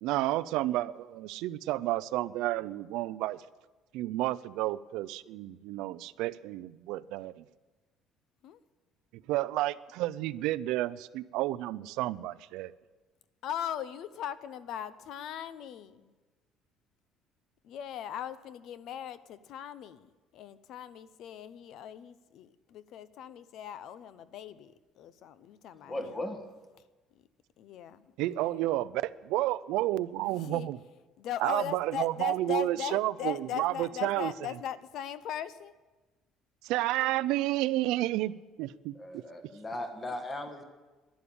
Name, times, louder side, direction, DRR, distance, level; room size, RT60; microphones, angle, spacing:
voice 1, 0.0-3.4 3.9-7.4 9.1-12.7 28.2-30.8 31.4-34.3 36.6-39.2, right 16 dB, 80° right, 17 dB, 0.5 m, -31 dB
voice 2, 13.4-16.1 17.6-26.2 27.6-28.1 28.4-28.6 30.2-30.7 31.2-35.7, left 9 dB, 50° left, 15 dB, 0.6 m, -39 dB
voice 3, 25.8-26.5 38.9-40.6, left 1 dB, 15° left, 6 dB, 1.4 m, -37 dB
11.5 x 11.0 x 8.6 m, 1.2 s
cardioid pair, 175°, 0 cm